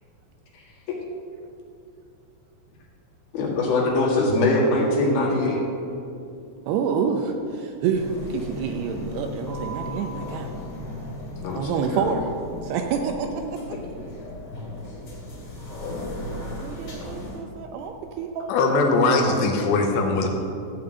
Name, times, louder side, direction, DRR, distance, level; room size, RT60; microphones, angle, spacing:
voice 1, 3.3-5.6 11.4-11.6 11.9-12.0, left 2 dB, 60° left, -3 dB, 3.6 m, -22 dB
voice 2, 6.7-10.5 11.5-12.3 12.6-13.8 16.6-19.0, right 6 dB, 80° right, 5 dB, 2.5 m, -28 dB
sound 1, 7.9-17.4, left 1 dB, 35° left, 2.9 m, -36 dB
voice 3, 18.5-20.3, left 3 dB, 85° left, 2 dB, 3.4 m, -20 dB
14.0 x 5.5 x 7.9 m, 2.6 s
omnidirectional pair, 5.2 m